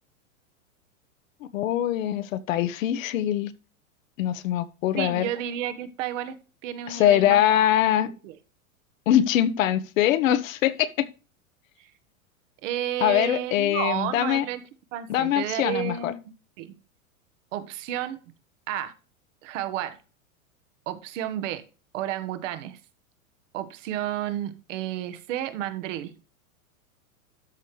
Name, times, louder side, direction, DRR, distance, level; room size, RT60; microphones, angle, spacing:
voice 1, 1.5-3.5 4.2-5.3 6.9-8.1 9.1-11.1 13.0-14.4 15.1-16.1, left 11 dB, 65° left, 15 dB, 1.2 m, -23 dB
voice 2, 5.0-7.4 8.2-8.4 11.8-11.9 12.6-14.6 14.9-16.2 16.6-16.7 17.5-18.2 18.7-18.9 19.4-20.0 20.9-21.6 21.9-22.8 23.5-26.1, right 11 dB, 60° right, 10 dB, 1.4 m, -31 dB
13.0 x 5.8 x 3.3 m, 0.33 s
hypercardioid pair, 120°, 42 cm